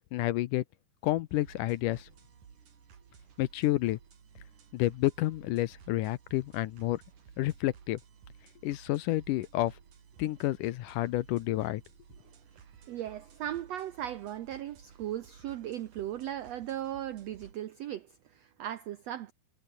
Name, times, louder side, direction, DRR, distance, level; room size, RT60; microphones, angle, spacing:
voice 1, 0.1-0.6 1.0-2.1 3.4-4.0 4.7-7.0 7.4-8.0 8.6-9.7 10.2-11.8, left 16 dB, 75° left, 2.1 m, -30 dB
sound 1, 1.3-17.5, right 7 dB, 55° right, 4.4 m, -56 dB
voice 2, 12.8-19.3, right 11 dB, 85° right, 1.4 m, -37 dB
omnidirectional pair, 4.2 m